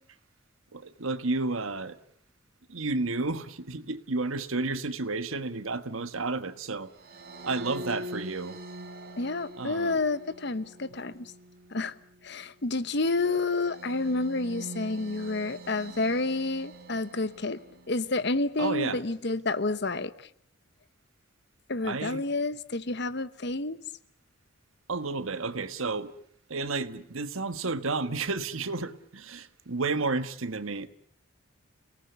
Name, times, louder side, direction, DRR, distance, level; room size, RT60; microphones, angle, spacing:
voice 1, 0.7-2.0 2.7-6.9 7.4-8.6 9.6-10.0 18.6-19.0 21.8-22.2 24.9-26.1 26.5-30.9, right 3 dB, 80° right, 1.4 m, -31 dB
sound 1, 6.9-18.3, right 1 dB, 45° right, 4.0 m, -45 dB
voice 2, 9.2-11.3 11.7-11.9 12.2-17.6 17.9-20.1 21.7-23.8, left 3 dB, 55° left, 1.0 m, -29 dB
30.0 x 18.5 x 8.2 m
head